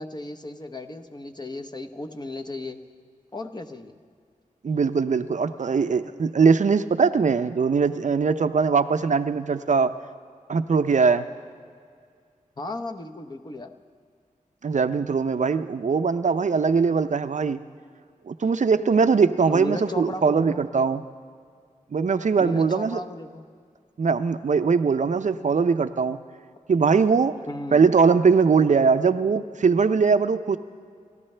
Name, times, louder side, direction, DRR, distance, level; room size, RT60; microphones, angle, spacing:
voice 1, 0.0-2.8 3.3-4.0 12.6-13.7 19.5-20.6 22.4-23.4 27.5-27.9, left 1 dB, 30° left, 5 dB, 0.9 m, -35 dB
voice 2, 4.6-9.9 10.5-11.3 14.6-17.6 18.3-21.0 21.9-23.0 24.0-26.2 26.7-27.4 27.7-30.6, right 5 dB, 60° right, 10 dB, 0.5 m, -21 dB
29.5 x 13.5 x 3.3 m, 2.2 s
wide cardioid pair, 85°, 14 cm